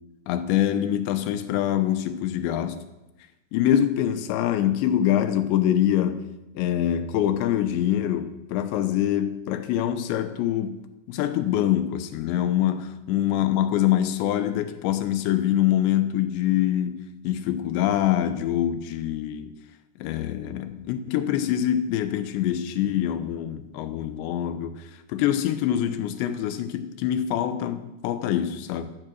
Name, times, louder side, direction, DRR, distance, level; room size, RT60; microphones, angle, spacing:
voice 1, 0.3-2.8 3.5-6.3 6.6-10.8 11.1-19.5 20.0-24.8 25.1-28.8, left 11 dB, 80° left, 3.2 m, -24 dB
14.0 x 12.0 x 6.3 m
omnidirectional pair, 5.2 m